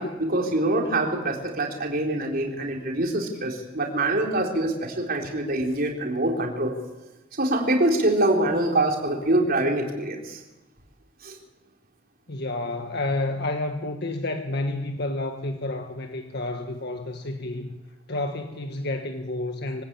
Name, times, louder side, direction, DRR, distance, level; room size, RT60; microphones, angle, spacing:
voice 1, 0.0-6.7 7.4-10.4 11.2-11.3, right 1 dB, 50° right, 1 dB, 3.8 m, -24 dB
voice 2, 2.3-2.7 12.3-17.7 18.1-19.8, left 2 dB, 60° left, 5 dB, 1.6 m, -30 dB
24.5 x 16.5 x 8.9 m, 1.1 s
head